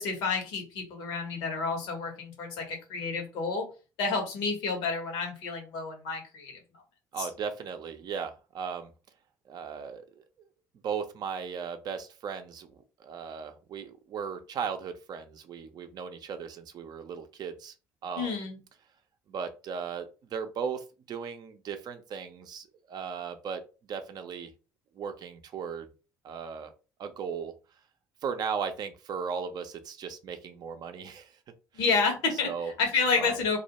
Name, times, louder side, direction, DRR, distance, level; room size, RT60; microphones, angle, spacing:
voice 1, 0.0-3.7 4.0-6.6 7.2-7.3 18.2-18.6 31.7-32.5 32.8-33.6, left 4 dB, 70° left, 2 dB, 1.0 m, -29 dB
voice 2, 7.1-8.9 9.5-10.2 10.8-17.7 18.0-18.3 19.3-23.6 23.9-24.5 24.9-25.9 26.2-26.7 27.0-27.5 28.2-31.4 32.4-32.7 33.1-33.4, right 6 dB, 50° right, 8 dB, 0.5 m, -37 dB
2.3 x 2.1 x 2.9 m, 0.32 s
hypercardioid pair, 60°, 9 cm